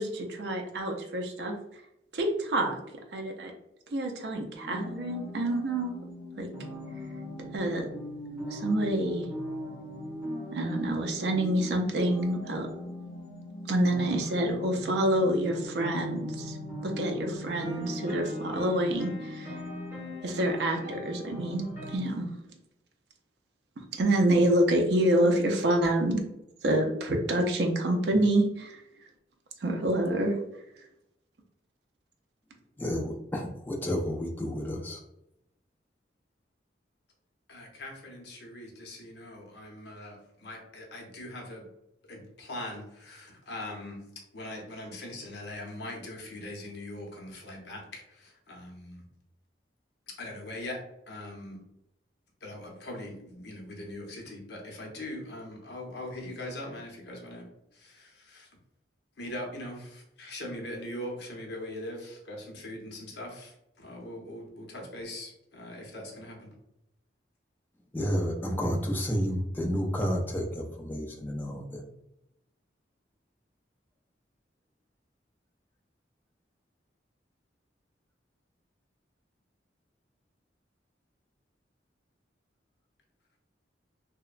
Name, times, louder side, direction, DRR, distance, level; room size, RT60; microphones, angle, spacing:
voice 1, 0.0-1.5 2.1-2.8 3.1-3.5 3.9-5.9 6.4-6.5 7.5-7.9 8.5-9.2 10.5-12.7 13.7-16.6 16.8-19.5 20.2-22.3 23.8-26.2 26.6-28.8 29.6-30.4, right 1 dB, 60° right, 3 dB, 0.4 m, -27 dB
sound 1, 4.5-22.0, left 1 dB, 15° right, 1.1 m, -39 dB
voice 2, 32.8-35.0 67.9-71.8, equal, 10° left, 0 dB, 0.3 m, -31 dB
voice 3, 37.5-41.7 42.1-44.0 44.3-49.0 50.1-51.6 52.4-57.5 57.7-58.5 59.2-66.6, left 1 dB, 60° left, 0 dB, 0.6 m, -41 dB
2.8 x 2.1 x 2.4 m, 0.83 s
head